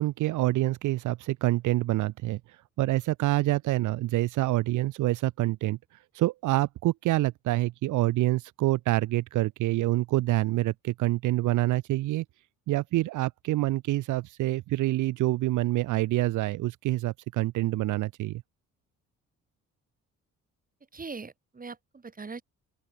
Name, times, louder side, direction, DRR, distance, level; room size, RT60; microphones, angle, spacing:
voice 1, 0.0-2.4 2.8-5.8 6.1-12.2 12.7-18.4, right 17 dB, 80° right, 0.7 m, -26 dB
voice 2, 20.9-22.4, right 4 dB, 30° right, 4.4 m, -41 dB
open air
cardioid pair, 90°, 30 cm